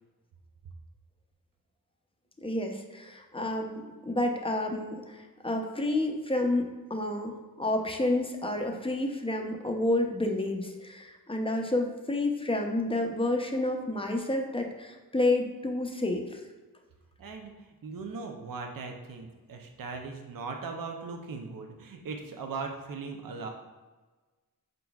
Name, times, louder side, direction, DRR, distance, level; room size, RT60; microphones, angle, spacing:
voice 1, 2.4-16.4, left 2 dB, 15° left, 3 dB, 0.5 m, -30 dB
voice 2, 17.2-17.5 17.8-23.5, right 4 dB, 60° right, 3 dB, 0.6 m, -39 dB
4.5 x 3.9 x 2.3 m, 1.3 s
wide cardioid pair, 60°, 37 cm